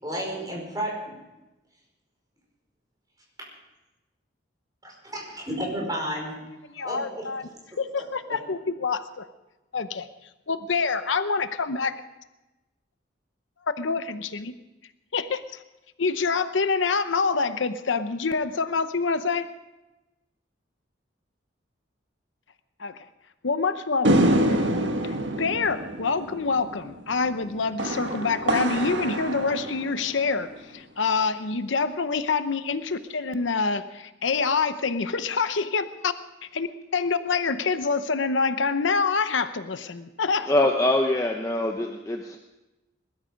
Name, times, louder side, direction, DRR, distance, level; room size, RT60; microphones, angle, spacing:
voice 1, 0.0-1.2 4.8-6.3 6.8-7.3 7.9-8.3, equal, 20° right, -2 dB, 5.2 m, -32 dB
voice 2, 6.7-7.5 7.8-9.2 9.7-10.1 10.5-12.0 13.8-14.5 15.1-15.6 16.0-19.5 22.8-23.0 23.4-24.7 25.0-36.1 36.5-36.7 36.9-40.5, left 4 dB, 80° left, 11 dB, 0.8 m, -26 dB
sound 1, 24.0-30.5, right 1 dB, 75° right, 1.6 m, -26 dB
voice 3, 40.4-42.4, left 1 dB, 15° left, 3 dB, 0.8 m, -23 dB
20.5 x 13.0 x 5.3 m, 1.0 s
head